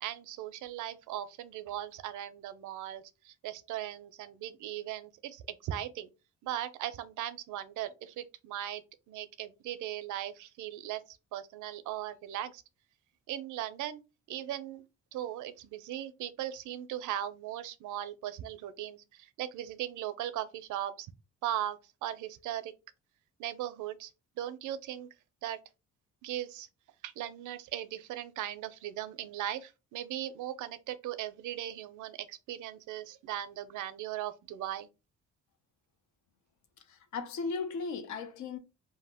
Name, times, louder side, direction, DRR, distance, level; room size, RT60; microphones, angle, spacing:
voice 1, 0.0-6.1 6.4-11.0 11.3-12.6 13.3-14.0 14.3-14.9 15.1-21.1 21.4-22.7 23.4-24.1 24.4-25.1 25.4-25.6 26.2-26.7 27.0-34.9, right 12 dB, 80° right, 0.5 m, -38 dB
voice 2, 36.9-38.6, left 4 dB, 70° left, 0.7 m, -36 dB
2.7 x 2.1 x 3.4 m
cardioid pair, 90°, 30 cm